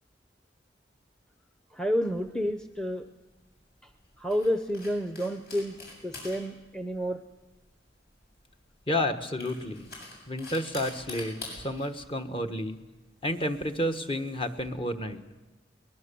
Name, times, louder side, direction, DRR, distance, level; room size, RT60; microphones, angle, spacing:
voice 1, 1.7-3.0 4.2-7.2, equal, 5° left, 7 dB, 0.8 m, -30 dB
sound 1, 2.1-14.7, left 2 dB, 60° left, 7.4 m, -47 dB
voice 2, 8.9-9.9 10.3-12.8 13.2-15.2, left 1 dB, 30° left, 6 dB, 1.4 m, -31 dB
23.0 x 20.5 x 7.0 m, 1.1 s
head